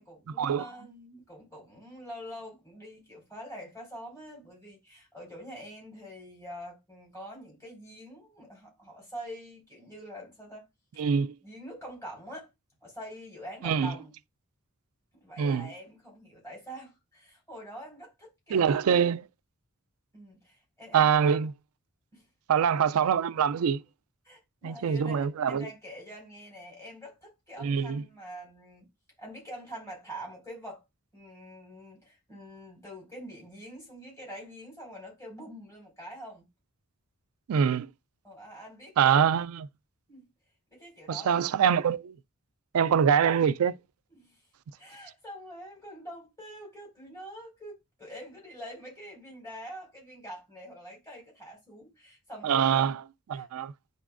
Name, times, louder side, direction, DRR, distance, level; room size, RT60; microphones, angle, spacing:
voice 1, 0.0-10.7 11.4-12.5 12.8-14.1 15.1-19.2 20.1-21.1 22.1-22.2 24.2-28.9 29.2-30.8 31.1-36.4 38.2-39.2 40.1-40.3 40.7-41.5 44.1-44.3 44.7-52.9 53.3-53.5, equal, 15° left, 4.9 m, -45 dB
voice 2, 11.0-11.3 13.6-13.9 15.4-15.7 18.5-19.2 20.9-21.5 22.5-23.8 24.6-25.7 27.6-28.0 37.5-37.9 39.0-39.7 41.1-42.1 42.7-43.8 52.4-53.0 53.3-53.7, right 7 dB, 85° right, 0.4 m, -24 dB
10.0 x 4.1 x 2.5 m
head